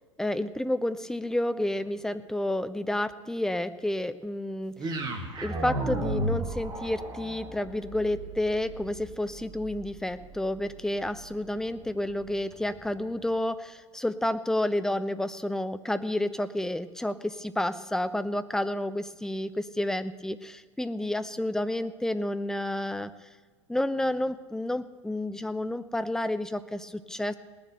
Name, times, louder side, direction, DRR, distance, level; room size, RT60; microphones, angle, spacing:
voice 1, 0.2-4.9 5.4-23.1 23.7-27.3, left 1 dB, 5° left, 11 dB, 0.6 m, -30 dB
sound 1, 4.8-13.0, right 1 dB, 25° right, 2.1 m, -36 dB
19.0 x 7.0 x 7.7 m, 1.4 s
figure-of-eight pair, 85°, 16 cm